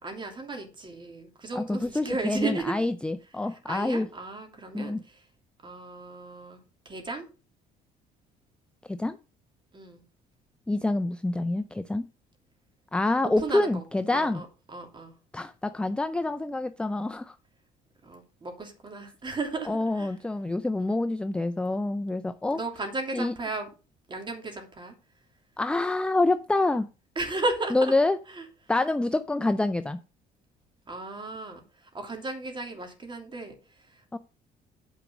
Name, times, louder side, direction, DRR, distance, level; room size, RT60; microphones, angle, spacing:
voice 1, 0.0-2.8 3.5-5.2 5.6-7.3 9.7-10.0 13.2-13.8 14.1-15.2 18.0-20.1 20.8-21.0 22.5-23.7 24.1-24.9 27.2-27.9 28.3-28.4 30.9-34.0, right 3 dB, 30° right, 2.8 m, -35 dB
voice 2, 1.6-4.1 4.7-5.0 8.9-9.2 10.7-12.1 12.9-14.4 15.3-17.4 19.7-22.6 23.1-23.3 25.6-26.9 27.7-28.2 28.7-30.0 34.1-34.2, left 2 dB, 5° left, 0.4 m, -27 dB
9.2 x 5.1 x 6.1 m
cardioid pair, 110°, 17 cm